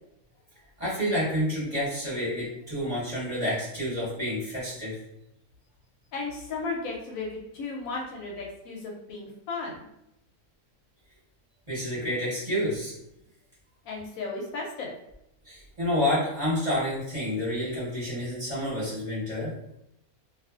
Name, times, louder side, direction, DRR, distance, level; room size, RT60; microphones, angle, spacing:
voice 1, 0.8-5.0 11.7-12.9 15.4-19.5, left 1 dB, 30° right, -10 dB, 1.1 m, -29 dB
voice 2, 6.1-9.9 13.8-14.9, left 3 dB, 70° left, -2 dB, 0.9 m, -35 dB
2.4 x 2.4 x 2.3 m, 0.82 s
omnidirectional pair, 1.6 m